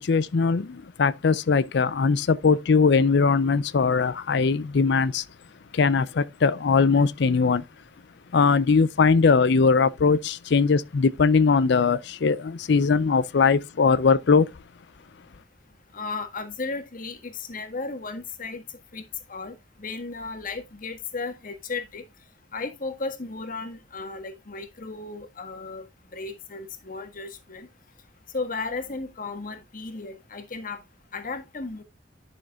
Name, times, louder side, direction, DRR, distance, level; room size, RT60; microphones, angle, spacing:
voice 1, 0.0-5.2 5.7-7.6 8.3-14.5, left 5 dB, 65° left, 0.5 m, -20 dB
voice 2, 15.9-18.6 18.9-19.0 19.3-22.0 22.5-25.8 26.1-27.7 28.3-30.8 31.1-31.8, left 3 dB, 50° left, 1.6 m, -35 dB
11.5 x 6.4 x 2.3 m
head